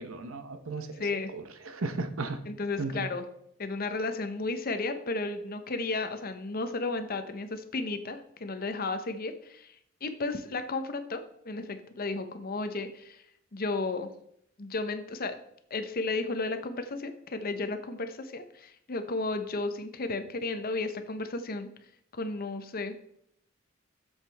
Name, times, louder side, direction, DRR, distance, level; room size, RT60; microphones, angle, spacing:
voice 1, 0.0-0.9 1.3-2.4 2.8-3.1, right 3 dB, 85° right, 9 dB, 0.8 m, -35 dB
voice 2, 1.0-1.3 2.5-3.2 3.6-9.7 10.0-13.2 13.5-14.1 14.6-15.3 15.7-21.7 22.1-23.0, left 3 dB, 45° left, 9 dB, 0.8 m, -33 dB
7.5 x 7.3 x 3.4 m, 0.70 s
head